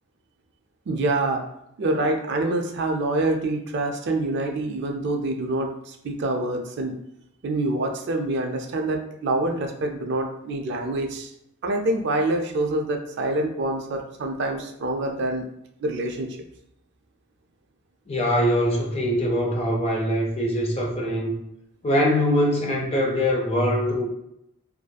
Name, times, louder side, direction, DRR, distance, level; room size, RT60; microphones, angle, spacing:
voice 1, 0.9-1.4 1.8-6.9 7.4-11.3 11.6-15.4 15.8-16.4, right 2 dB, 50° right, 3 dB, 0.3 m, -26 dB
voice 2, 18.1-21.3 21.8-24.1, equal, 25° left, -1 dB, 0.4 m, -23 dB
2.5 x 2.4 x 2.2 m, 0.78 s
head